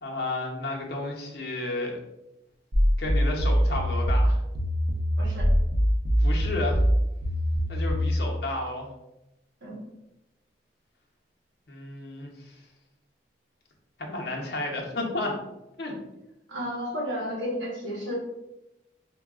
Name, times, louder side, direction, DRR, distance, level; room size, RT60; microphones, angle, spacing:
voice 1, 0.0-2.0 3.0-4.4 6.2-6.8 7.7-8.9 11.7-12.6 14.0-15.4 15.8-15.9, left 2 dB, 60° left, -1 dB, 0.7 m, -32 dB
sound 1, 2.7-8.2, equal, 65° right, 0.7 m, -23 dB
voice 2, 16.5-18.1, equal, 90° right, -2 dB, 1.1 m, -32 dB
4.6 x 2.2 x 2.3 m, 0.90 s
head